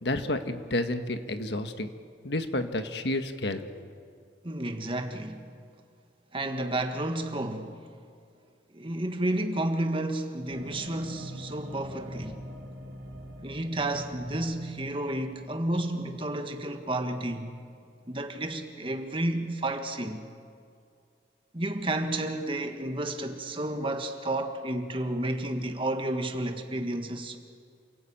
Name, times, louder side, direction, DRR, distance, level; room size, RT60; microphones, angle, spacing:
voice 1, 0.0-1.9 2.2-3.9, left 1 dB, 65° left, 1.5 m, -30 dB
voice 2, 4.4-5.5 6.3-7.8 8.7-12.4 13.4-17.6 18.1-20.3 21.5-27.4, right 1 dB, 30° right, 1.6 m, -31 dB
sound 1, 10.5-19.4, equal, 75° right, 3.1 m, -45 dB
28.5 x 17.5 x 8.8 m
head